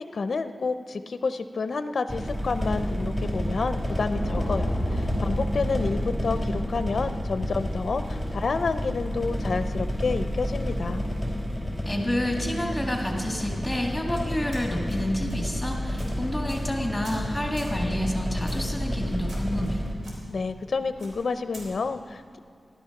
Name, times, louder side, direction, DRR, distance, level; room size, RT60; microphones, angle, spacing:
voice 1, 0.1-11.0 20.3-22.4, left 4 dB, 60° left, 10 dB, 0.5 m, -29 dB
sound 1, 2.1-19.9, equal, 15° right, 3.1 m, -30 dB
sound 2, 4.1-8.4 8.7-8.8, equal, 40° right, 4.6 m, -32 dB
voice 2, 11.9-19.8, left 1 dB, 5° left, 0 dB, 1.8 m, -29 dB
sound 3, 14.1-15.0 15.3-15.5 16.0-16.1 16.5-16.7 17.0-17.3 17.6-17.8 18.5-18.7 19.3-19.7 20.0-20.1 21.0-21.7, equal, 65° right, 4.1 m, -42 dB
14.5 x 12.0 x 5.8 m, 2.4 s
wide cardioid pair, 125°, 0 cm